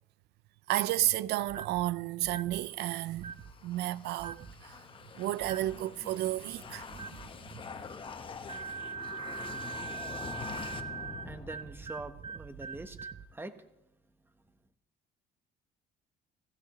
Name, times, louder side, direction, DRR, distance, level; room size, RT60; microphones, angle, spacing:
voice 1, 0.7-3.3 3.6-4.7 5.2-7.1, right 15 dB, 80° right, 0.5 m, -32 dB
sound 1, 1.5-1.8 2.2-2.6 3.2-3.5 4.2-4.6 5.4-5.8 6.9-7.3 8.5-13.3, right 6 dB, 30° right, 0.7 m, -42 dB
sound 2, 2.7-12.1, left 5 dB, 30° left, 1.1 m, -45 dB
voice 2, 11.2-13.6, right 2 dB, 10° right, 1.1 m, -44 dB
16.0 x 15.5 x 3.1 m
cardioid pair, 110°, 17 cm